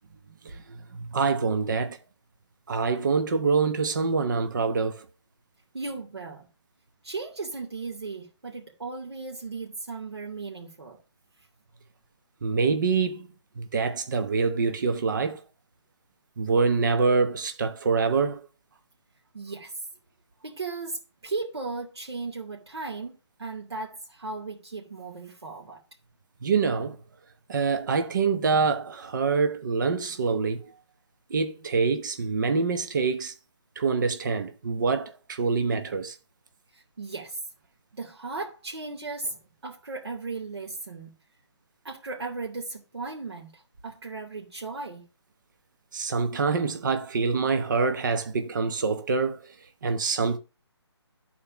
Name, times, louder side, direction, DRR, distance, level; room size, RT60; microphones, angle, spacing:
voice 1, 0.9-2.0 2.7-5.0 12.4-13.3 13.6-15.4 16.4-18.4 26.4-27.0 27.5-30.7 31.3-33.3 33.8-36.1 45.9-49.5 49.8-50.4, right 4 dB, 45° right, 1.0 m, -25 dB
voice 2, 5.7-6.5 7.0-11.0 19.3-19.7 20.4-25.8 36.7-37.4 37.9-41.1 41.8-45.0, right 3 dB, 65° right, 2.6 m, -36 dB
13.0 x 4.4 x 5.8 m
figure-of-eight pair, 145°, 14 cm